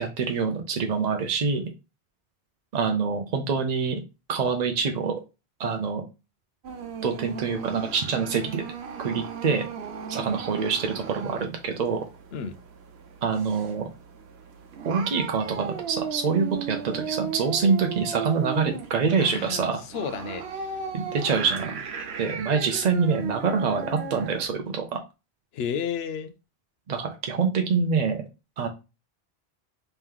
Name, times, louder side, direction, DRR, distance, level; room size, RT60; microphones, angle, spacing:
voice 1, 0.0-1.7 2.7-4.0 4.3-5.1 5.6-6.0 7.0-8.6 9.0-9.6 10.1-12.0 13.2-13.9 14.9-19.8 20.9-21.8 22.2-24.8 26.9-28.2 28.6-28.7, right 5 dB, 50° right, 0.6 m, -25 dB
sound 1, 6.6-24.4, right 6 dB, 75° right, 0.9 m, -36 dB
voice 2, 19.2-20.8 25.5-26.3, left 7 dB, 75° left, 0.8 m, -32 dB
3.3 x 3.0 x 3.5 m
omnidirectional pair, 1.1 m